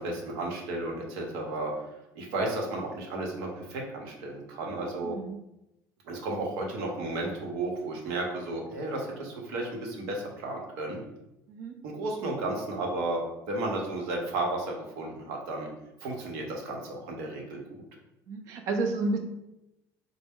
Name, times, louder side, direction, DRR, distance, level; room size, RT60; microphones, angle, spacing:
voice 1, 0.0-5.2 6.0-11.0 11.8-15.7 16.0-17.8, right 2 dB, 85° right, 0 dB, 0.9 m, -33 dB
voice 2, 5.0-5.4 11.5-11.8 18.3-19.2, right 3 dB, 55° right, 4 dB, 0.6 m, -31 dB
4.1 x 2.1 x 3.5 m, 0.91 s
cardioid pair, 160°, 6 cm